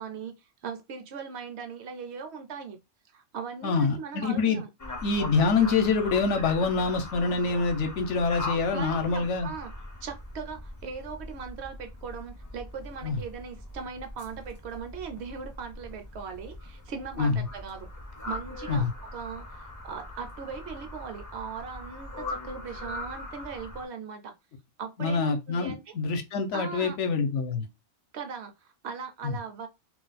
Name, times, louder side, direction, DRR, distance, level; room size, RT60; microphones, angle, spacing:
voice 1, 0.0-2.8 3.1-4.7 8.7-9.7 10.0-17.9 18.2-24.3 24.8-25.9 26.5-27.0 28.1-29.7, right 6 dB, 65° right, 0.8 m, -39 dB
voice 2, 3.6-4.6 5.0-9.5 13.0-13.2 17.2-17.4 18.7-18.9 25.0-27.6 29.2-29.3, left 4 dB, 70° left, 0.9 m, -26 dB
sound 1, 4.8-23.9, left 2 dB, 25° left, 0.5 m, -41 dB
2.4 x 2.2 x 3.9 m
omnidirectional pair, 1.3 m